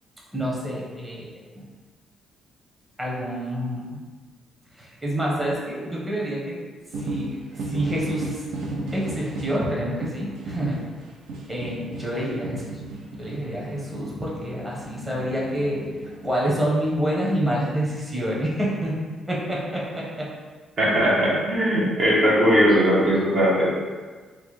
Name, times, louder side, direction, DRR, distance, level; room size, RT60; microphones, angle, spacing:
voice 1, 0.3-1.3 1.6-1.7 3.0-4.0 4.8-6.6 7.0-8.4 8.9-10.8 11.5-12.6 13.2-15.9 16.2-19.0 19.3-20.3, equal, 15° right, -5 dB, 0.9 m, -27 dB
sound 1, 6.9-9.6 10.0-16.3, right 2 dB, 75° right, 0.4 m, -34 dB
voice 2, 20.8-23.7, equal, 50° right, -7 dB, 0.9 m, -19 dB
3.1 x 2.1 x 3.0 m, 1.4 s
cardioid pair, 90°, 0 cm